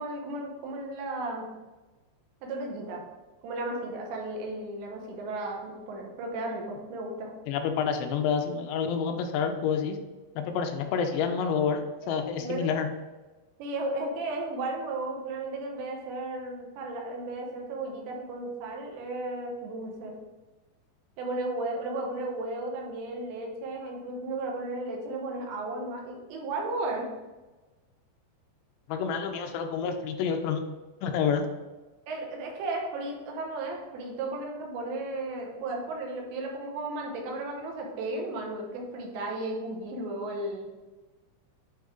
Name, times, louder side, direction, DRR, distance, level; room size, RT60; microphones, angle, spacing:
voice 1, 0.0-1.5 2.4-3.0 3.4-7.3 12.0-12.7 13.6-20.1 21.2-27.1 32.1-40.9, right 2 dB, 85° right, 0 dB, 3.3 m, -34 dB
voice 2, 7.5-10.0 10.4-12.9 28.9-30.6 31.0-31.4, left 6 dB, 85° left, 6 dB, 2.7 m, -28 dB
8.6 x 3.1 x 3.7 m, 1.2 s
omnidirectional pair, 4.9 m